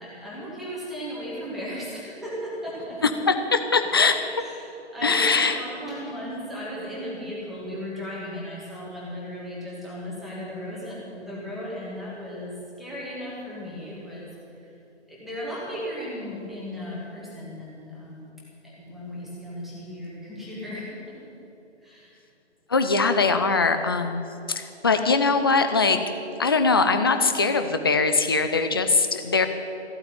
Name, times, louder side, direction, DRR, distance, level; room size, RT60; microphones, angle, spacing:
voice 1, 0.0-3.0 4.4-14.8 15.1-18.3 18.6-21.2 21.8-22.2, equal, ahead, -8 dB, 2.3 m, -36 dB
voice 2, 3.0-4.4 5.0-5.6 22.7-24.2 24.5-26.0 26.4-29.5, left 4 dB, 20° left, 8 dB, 0.5 m, -21 dB
15.0 x 8.8 x 9.1 m, 2.8 s
figure-of-eight pair, 145°, 35 cm